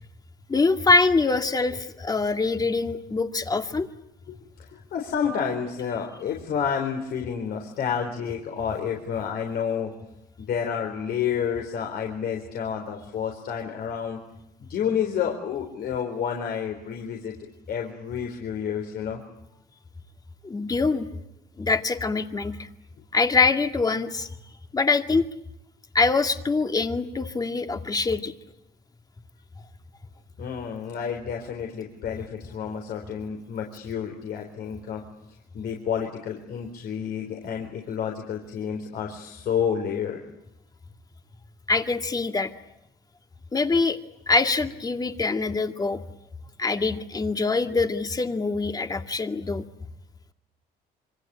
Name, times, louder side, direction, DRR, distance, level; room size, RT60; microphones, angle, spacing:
voice 1, 0.5-3.9 20.4-21.1 21.6-22.7 23.1-24.3 24.7-25.3 25.9-28.3 41.7-42.5 43.5-44.0 44.3-46.0 46.6-49.6, left 3 dB, 20° left, 6 dB, 2.1 m, -24 dB
voice 2, 4.3-9.9 10.4-14.2 14.7-17.3 17.7-19.2 30.4-35.0 35.5-40.2, left 7 dB, 65° left, 2 dB, 4.2 m, -30 dB
26.5 x 25.0 x 8.8 m, 0.86 s
cardioid pair, 110°, 17 cm